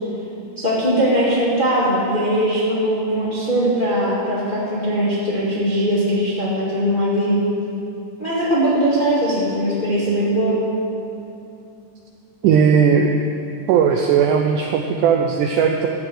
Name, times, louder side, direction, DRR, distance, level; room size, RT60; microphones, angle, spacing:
voice 1, 0.6-7.4 8.2-10.6, equal, 20° left, -7 dB, 1.4 m, -20 dB
voice 2, 12.4-13.2 13.7-15.9, right 7 dB, 80° right, 3 dB, 1.8 m, -17 dB
13.5 x 7.2 x 7.8 m, 2.8 s
omnidirectional pair, 4.3 m